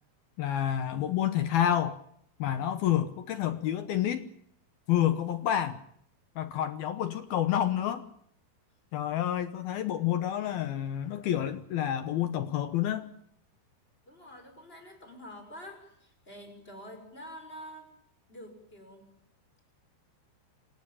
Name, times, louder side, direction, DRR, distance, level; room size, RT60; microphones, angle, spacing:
voice 1, 0.4-2.0 2.4-4.3 4.9-5.8 6.4-8.1 8.9-13.1, left 11 dB, 75° left, 12 dB, 2.3 m, -29 dB
voice 2, 14.0-17.9 18.3-19.1, equal, 10° left, 5 dB, 6.0 m, -47 dB
28.0 x 16.0 x 8.9 m, 0.69 s
omnidirectional pair, 5.6 m